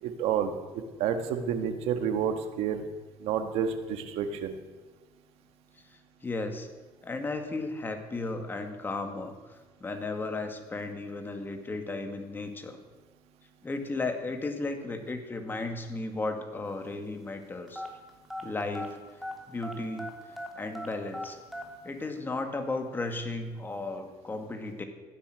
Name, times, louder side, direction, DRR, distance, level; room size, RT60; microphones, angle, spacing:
voice 1, 0.0-2.8 3.2-4.5, right 7 dB, 80° right, 8 dB, 1.7 m, -30 dB
voice 2, 6.2-6.7 7.0-12.8 13.6-17.8 18.4-19.0 19.5-20.1 20.6-21.4 21.8-24.8, left 3 dB, 20° left, 5 dB, 2.0 m, -35 dB
sound 1, 17.7-19.4 19.6-21.7, left 1 dB, ahead, 2.9 m, -38 dB
15.5 x 10.0 x 7.9 m, 1.3 s
cardioid pair, 130°, 10 cm